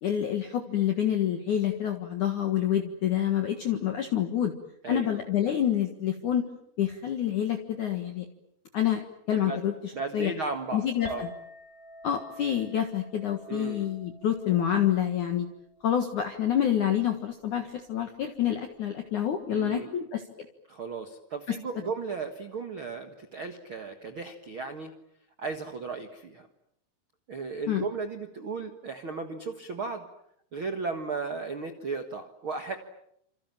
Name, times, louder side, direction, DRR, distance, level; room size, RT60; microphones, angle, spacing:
voice 1, 0.0-4.5 4.9-6.5 6.8-8.3 8.7-9.0 9.3-10.3 10.7-11.3 12.0-15.5 15.8-20.2 21.5-21.6 27.7-27.8, left 10 dB, 55° left, 5 dB, 2.5 m, -27 dB
voice 2, 4.8-5.2 9.3-9.6 9.9-11.3 13.5-13.9 19.5-19.9 20.7-24.9 25.4-26.5 27.3-30.1 30.5-32.7, right 4 dB, 65° right, 6 dB, 1.2 m, -35 dB
Chink clink, 11.1-17.3, left 1 dB, 10° right, 5.7 m, -49 dB
29.0 x 27.5 x 7.4 m, 0.75 s
omnidirectional pair, 5.2 m